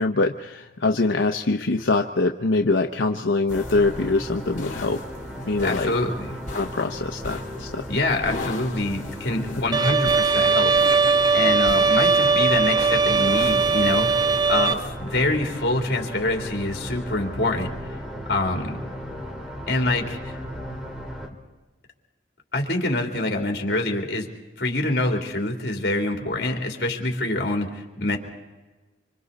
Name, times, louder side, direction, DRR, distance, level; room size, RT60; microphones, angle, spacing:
voice 1, 0.0-5.0 5.5-5.9 6.5-7.9, left 3 dB, 85° left, 4 dB, 0.8 m, -23 dB
sound 1, 3.5-14.9, left 3 dB, 40° left, 2.9 m, -40 dB
sound 2, 3.5-21.3, equal, 5° right, 2.5 m, -36 dB
voice 2, 5.6-6.4 7.9-10.7 11.3-17.7 18.3-18.8 19.7-20.4 22.5-24.3 24.6-28.2, left 2 dB, 60° left, 2 dB, 3.1 m, -25 dB
Bowed string instrument, 9.7-14.7, right 4 dB, 20° right, 0.6 m, -19 dB
26.0 x 25.5 x 4.1 m, 1.2 s
head